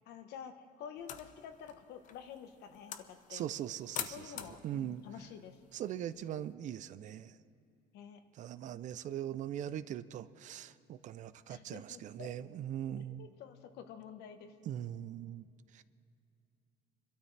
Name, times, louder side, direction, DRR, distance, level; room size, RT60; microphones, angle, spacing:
voice 1, 0.1-3.4 4.1-5.6 7.9-8.2 11.5-12.3 13.0-14.5, left 8 dB, 75° left, 7 dB, 1.1 m, -49 dB
sound 1, 1.0-6.5, left 9 dB, 50° left, 0.7 m, -47 dB
voice 2, 3.3-5.0 5.7-7.3 8.3-13.3 14.7-15.5 15.7-15.8, right 11 dB, 45° right, 15 dB, 0.4 m, -41 dB
25.0 x 12.5 x 3.3 m, 2.6 s
cardioid pair, 145°, 17 cm